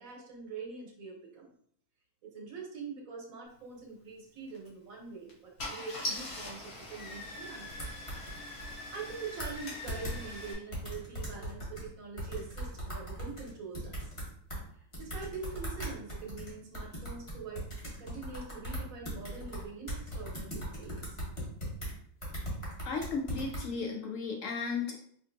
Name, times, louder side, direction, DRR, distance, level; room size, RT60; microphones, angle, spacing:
voice 1, 0.0-1.5 2.2-7.9 8.9-14.1 14.7-17.7 18.0-21.2, right 4 dB, 65° right, 0 dB, 1.2 m, -44 dB
Car / Engine starting, 4.5-4.7 5.3-5.4 5.6-10.5, left 1 dB, 50° left, 1.1 m, -41 dB
sound 1, 7.7-8.7 9.1-9.2 9.4-9.6 9.9-10.2 10.7-11.9 12.2-14.6 14.9-21.9 22.2-23.6, equal, 25° left, 0.9 m, -39 dB
voice 2, 22.8-25.0, left 4 dB, 70° left, 2 dB, 0.8 m, -35 dB
4.4 x 2.5 x 2.5 m, 0.63 s
omnidirectional pair, 1.6 m